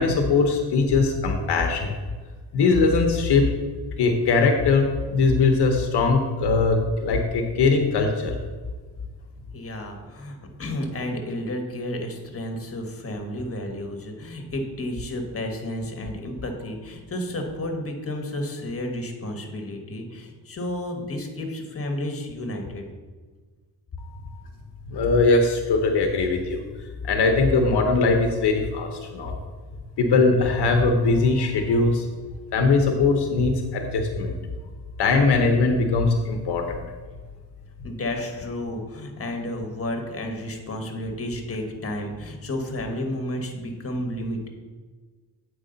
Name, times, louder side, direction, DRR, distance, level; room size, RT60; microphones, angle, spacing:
voice 1, 0.0-2.0 2.5-3.5 4.0-8.4 24.0-24.4 24.9-26.6 27.0-29.4 30.0-32.1 32.5-34.4 35.0-36.8, left 3 dB, 70° left, 4 dB, 0.8 m, -21 dB
voice 2, 9.5-22.8 37.8-44.5, left 1 dB, 35° left, 3 dB, 1.3 m, -31 dB
8.2 x 4.8 x 3.9 m, 1.4 s
cardioid pair, 90°, 41 cm